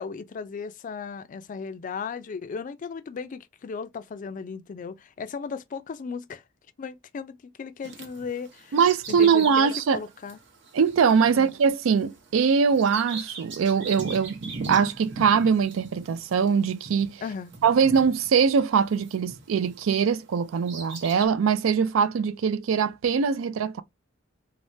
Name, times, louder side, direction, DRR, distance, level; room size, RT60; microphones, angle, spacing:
voice 1, 0.0-6.4 6.8-8.8 9.1-10.4 11.3-11.5 17.2-17.6, left 5 dB, 40° left, 0.3 m, -36 dB
Bird vocalization bird call bird song, 7.8-19.9 20.4-21.3, right 5 dB, 65° right, 0.8 m, -39 dB
voice 2, 8.7-10.0 10.7-14.4 14.6-17.2 17.6-23.8, right 6 dB, 90° right, 0.4 m, -22 dB
3.4 x 2.0 x 2.6 m
head